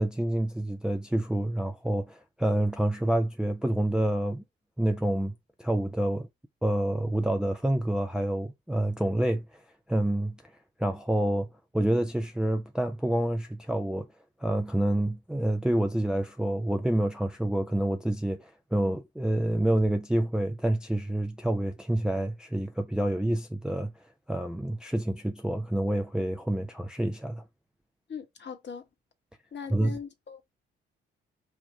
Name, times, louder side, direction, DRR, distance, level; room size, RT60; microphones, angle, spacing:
voice 1, 0.0-4.4 4.8-5.3 5.6-6.3 6.6-9.6 9.9-10.3 10.8-11.5 11.7-14.1 14.4-23.9 24.3-27.4 29.7-30.0, right 1 dB, 5° right, 0.6 m, -28 dB
voice 2, 28.1-28.8 29.5-30.5, left 6 dB, 35° left, 1.1 m, -40 dB
5.3 x 2.5 x 3.3 m
figure-of-eight pair, 40°, 30 cm